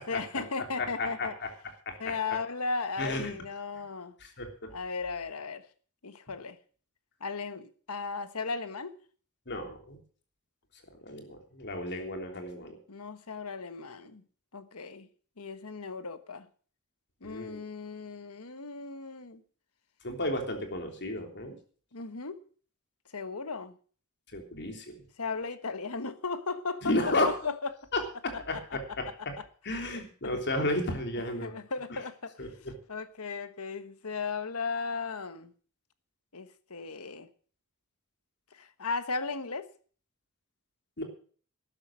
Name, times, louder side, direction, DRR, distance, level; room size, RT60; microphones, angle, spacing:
voice 1, 0.1-1.3 2.0-4.1 4.7-5.6 6.0-6.6 7.2-9.0 12.9-14.2 14.5-15.1 15.4-16.5 17.2-19.4 21.9-22.4 23.1-23.8 25.2-27.0 27.4-27.5 28.3-28.6 30.2-30.4 31.4-32.3 32.9-35.5 36.3-37.3 38.5-39.7, left 4 dB, 75° left, 1.3 m, -36 dB
voice 2, 0.8-1.5 1.8-2.1 3.0-3.3 4.2-4.7 9.5-10.0 11.0-12.8 17.2-17.6 20.0-21.6 24.3-25.0 26.8-27.3 27.9-29.3 29.6-31.5 31.9-32.0 32.4-32.7 41.0-41.1, left 1 dB, 50° left, 3.3 m, -33 dB
13.0 x 11.0 x 6.3 m
head